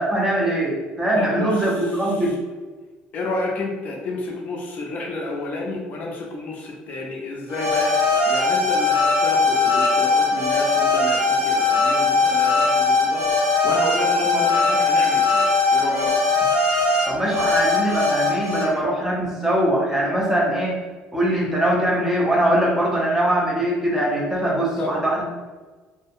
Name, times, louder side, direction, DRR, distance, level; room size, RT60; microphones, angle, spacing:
voice 1, 0.0-2.3 17.1-20.8 21.1-25.2, right 1 dB, 10° right, -3 dB, 0.5 m, -22 dB
voice 2, 1.1-2.3 3.1-16.1 24.8-25.0, left 2 dB, 45° left, 0 dB, 0.4 m, -30 dB
sound 1, 7.5-18.6, left 3 dB, 50° right, 1.0 m, -20 dB
2.4 x 2.0 x 2.6 m, 1.3 s
cardioid pair, 140°, 4 cm